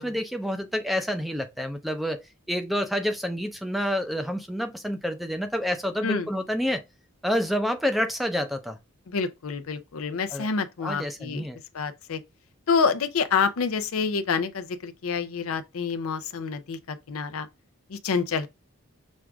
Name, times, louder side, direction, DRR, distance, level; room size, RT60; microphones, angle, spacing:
voice 1, 0.0-6.8 7.2-8.8 10.3-10.5 10.8-11.6, equal, ahead, 0.5 m, -28 dB
voice 2, 9.1-11.5 11.7-12.2 12.7-17.5 17.9-18.5, left 5 dB, 85° left, 0.6 m, -27 dB
6.2 x 2.4 x 3.4 m
head